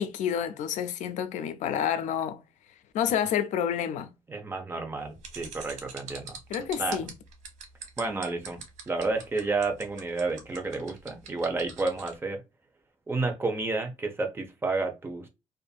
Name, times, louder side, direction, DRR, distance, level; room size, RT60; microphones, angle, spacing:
voice 1, 0.0-2.4 2.9-4.1 6.5-7.1, left 9 dB, 85° left, 0.4 m, -29 dB
voice 2, 4.3-6.4 6.8-7.1 8.0-12.4 13.1-15.3, right 3 dB, 20° right, 0.7 m, -31 dB
sound 1, 5.2-12.1, right 6 dB, 85° right, 1.1 m, -43 dB
2.6 x 2.4 x 2.3 m
cardioid pair, 125°, 12 cm